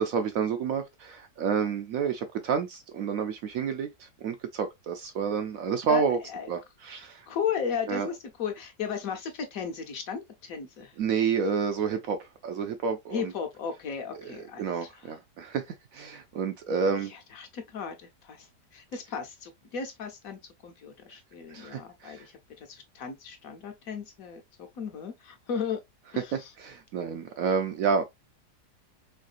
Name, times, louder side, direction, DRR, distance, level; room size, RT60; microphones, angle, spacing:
voice 1, 0.0-6.2 6.5-7.2 7.9-8.1 11.0-13.3 14.2-14.3 14.6-17.1 21.5-22.2 26.3-28.0, right 6 dB, 70° right, 0.9 m, -29 dB
voice 2, 5.9-6.5 7.3-10.9 13.1-14.9 16.7-18.5 18.7-22.3 22.7-25.8 26.1-26.5, left 6 dB, 60° left, 1.2 m, -35 dB
3.6 x 3.3 x 2.4 m
omnidirectional pair, 1.8 m